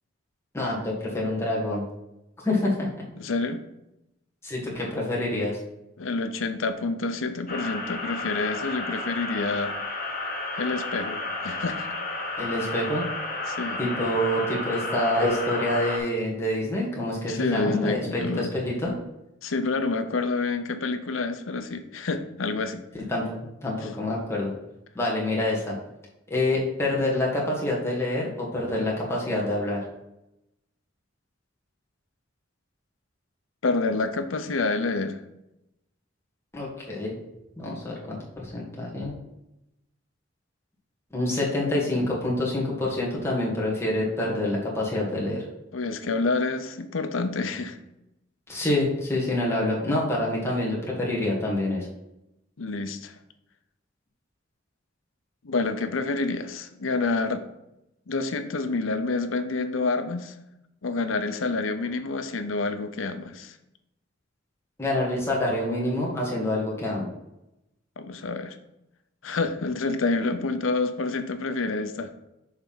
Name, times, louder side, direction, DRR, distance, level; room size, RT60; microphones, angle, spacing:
voice 1, 0.5-1.8 2.4-2.9 4.4-5.6 12.4-13.1 13.8-18.9 23.1-24.5 25.0-25.8 26.3-29.8 36.5-37.1 37.6-39.1 41.1-45.4 48.5-51.9 64.8-67.1, left 1 dB, 15° left, -5 dB, 1.7 m, -27 dB
voice 2, 3.2-3.6 6.0-9.8 10.6-11.9 13.5-13.8 17.3-18.5 19.4-22.8 33.6-35.2 45.7-47.8 52.6-53.1 55.4-57.4 58.1-60.3 60.8-63.6 68.0-68.6 69.2-72.1, left 3 dB, 90° left, 9 dB, 0.7 m, -28 dB
sound 1, 7.5-16.0, left 2 dB, 45° left, 1.3 m, -32 dB
6.6 x 3.4 x 5.6 m, 0.88 s
head